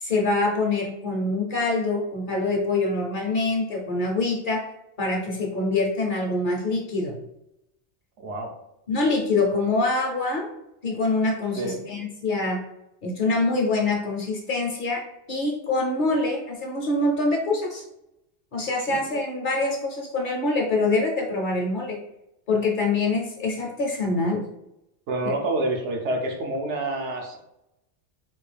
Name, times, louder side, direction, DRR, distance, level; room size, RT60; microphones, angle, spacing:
voice 1, 0.0-4.6 5.0-7.2 8.9-10.5 10.8-12.6 13.0-15.0 15.3-17.8 18.5-22.0 22.5-24.4, left 2 dB, 50° left, 0 dB, 0.7 m, -25 dB
voice 2, 8.2-8.5 11.5-11.8 18.9-19.0 25.1-27.4, right 2 dB, 75° right, 2 dB, 1.0 m, -28 dB
3.7 x 2.3 x 3.3 m, 0.84 s
omnidirectional pair, 1.2 m